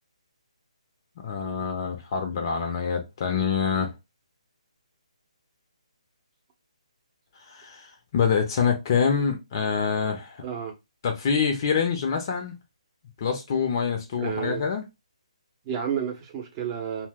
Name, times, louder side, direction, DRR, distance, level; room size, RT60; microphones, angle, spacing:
voice 1, 1.2-3.9 7.5-10.4 11.0-12.5 13.2-14.8, left 6 dB, 35° left, 0.6 m, -26 dB
voice 2, 10.4-10.7 14.2-14.6 15.6-17.1, right 8 dB, 25° right, 0.7 m, -30 dB
2.6 x 2.0 x 3.4 m
figure-of-eight pair, 145°, 4 cm